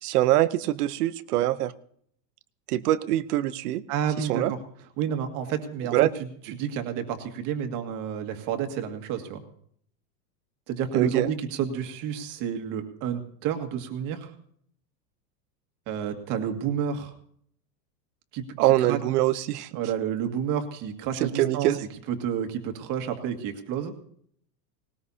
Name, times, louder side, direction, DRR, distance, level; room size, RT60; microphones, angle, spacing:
voice 1, 0.0-1.7 2.7-3.8 4.2-4.5 5.9-6.1 10.9-11.3 18.6-19.7 21.2-21.8, right 14 dB, 65° right, 13 dB, 0.9 m, -24 dB
voice 2, 3.9-4.6 5.0-6.0 6.5-9.4 10.7-14.3 15.9-17.1 18.3-19.0 19.7-21.7 22.1-23.9, right 8 dB, 40° right, 5 dB, 2.0 m, -30 dB
19.5 x 19.0 x 2.8 m, 0.65 s
supercardioid pair, 155°, 50 cm